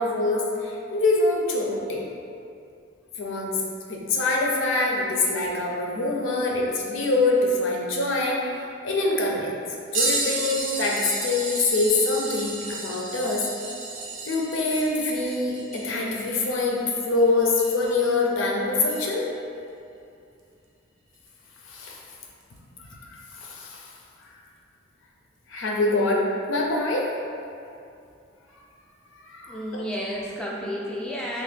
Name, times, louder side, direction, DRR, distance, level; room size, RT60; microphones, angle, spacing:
voice 1, 0.0-2.0 3.2-3.6 3.9-8.4 8.8-9.6 9.9-13.4 14.3-16.8 17.1-19.2 21.7-22.0 23.1-23.8 25.5-27.1 29.2-29.6, left 2 dB, 90° left, -1 dB, 0.5 m, -24 dB
sound 1, 9.9-18.1 18.9-19.0 21.3-21.4 22.4-22.6 23.6-23.7, right 3 dB, 85° right, 0.5 m, -32 dB
voice 2, 29.5-31.4, equal, 5° left, -5 dB, 0.3 m, -31 dB
3.0 x 2.1 x 3.3 m, 2.5 s
head